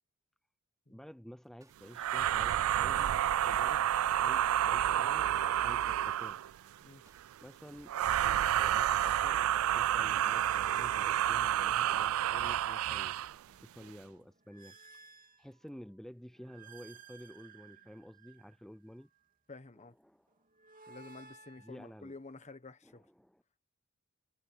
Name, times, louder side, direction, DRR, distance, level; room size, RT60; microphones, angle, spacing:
voice 1, 0.9-3.1 3.5-6.4 7.4-14.8 15.4-19.1 20.0-20.3 21.6-22.2 22.8-23.4, equal, ahead, 0.5 m, -51 dB
sound 1, 1.4-13.7, right 1 dB, 15° right, 4.6 m, -67 dB
sound 2, 1.9-6.5 7.9-13.3, right 11 dB, 70° right, 0.3 m, -30 dB
sound 3, 6.3-7.4 7.9-12.7 13.2-15.9 16.3-19.3 20.3-22.6, right 7 dB, 40° right, 2.9 m, -58 dB
voice 2, 19.5-19.9 20.9-23.1, left 3 dB, 30° left, 1.3 m, -50 dB
head